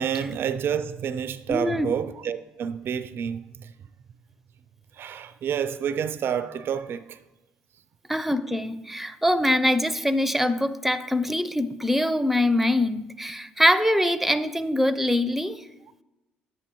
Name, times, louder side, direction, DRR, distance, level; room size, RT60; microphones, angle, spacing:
voice 1, 0.0-3.7 5.0-7.2, right 8 dB, 55° right, 0.4 m, -29 dB
voice 2, 1.5-1.9 8.1-15.6, left 1 dB, 5° right, 0.5 m, -23 dB
10.0 x 8.6 x 3.0 m
hypercardioid pair, 55°, 5 cm